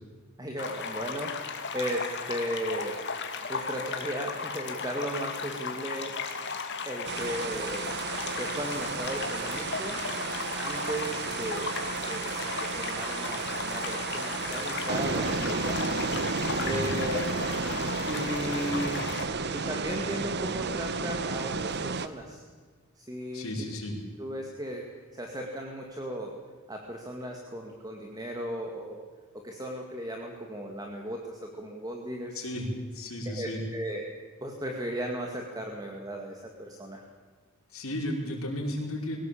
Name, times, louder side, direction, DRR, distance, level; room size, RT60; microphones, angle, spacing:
voice 1, 0.4-6.2 6.8-7.9 8.3-10.0 10.6-15.8 16.6-17.2 18.1-19.1 19.5-22.4 23.0-23.5 24.2-26.4 26.7-29.0 29.3-32.4 33.2-34.0 34.4-37.0, equal, 20° right, 1 dB, 2.1 m, -36 dB
sound 1, 0.6-19.3, left 5 dB, 55° left, 2.4 m, -36 dB
sound 2, 7.0-22.1, right 4 dB, 50° right, 1.0 m, -32 dB
voice 2, 23.3-24.0 32.3-33.6 37.7-39.2, left 1 dB, 75° left, 0 dB, 5.4 m, -34 dB
22.5 x 18.0 x 8.6 m, 1.5 s
head